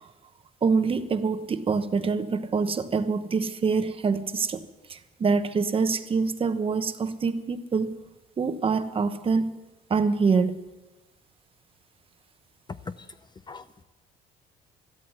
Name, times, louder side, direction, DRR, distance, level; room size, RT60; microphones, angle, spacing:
voice 1, 0.6-4.6 4.9-7.9 8.4-9.5 9.9-10.6, right 5 dB, 35° right, 9 dB, 1.1 m, -25 dB
voice 2, 12.9-13.2 13.5-13.8, left 4 dB, 25° left, 12 dB, 0.6 m, -40 dB
13.0 x 13.0 x 7.9 m, 1.1 s
cardioid pair, 110°, 17 cm